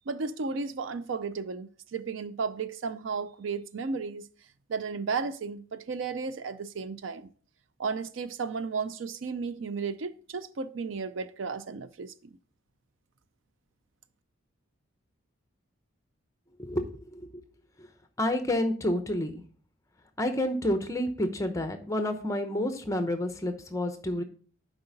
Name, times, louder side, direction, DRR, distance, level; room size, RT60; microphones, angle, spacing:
voice 1, 0.1-4.3 4.7-7.3 7.8-12.3, right 5 dB, 65° right, 0.4 m, -34 dB
voice 2, 16.6-17.4 18.2-19.3 20.2-24.2, left 1 dB, 15° left, 0.7 m, -29 dB
7.7 x 4.9 x 4.0 m
head